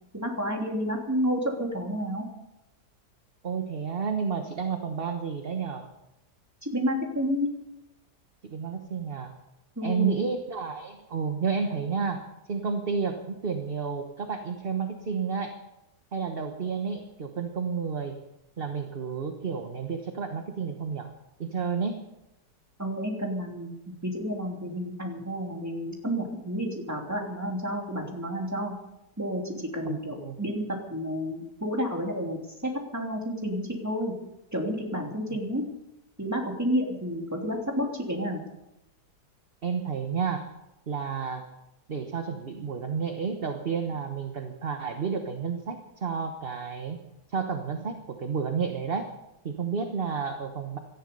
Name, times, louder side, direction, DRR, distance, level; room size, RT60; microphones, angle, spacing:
voice 1, 0.1-2.3 6.6-7.5 9.8-10.1 22.8-28.7 29.2-34.1 34.5-35.6 36.2-38.4, equal, 10° right, 0 dB, 3.0 m, -30 dB
voice 2, 3.4-5.9 8.5-9.3 9.8-15.6 16.1-18.2 18.6-21.1 21.4-22.0 29.8-30.4 39.6-40.5 40.9-41.5 41.9-47.0 47.3-49.1 49.4-50.8, right 6 dB, 40° right, 5 dB, 1.2 m, -31 dB
18.0 x 14.0 x 5.4 m, 0.90 s
omnidirectional pair, 1.8 m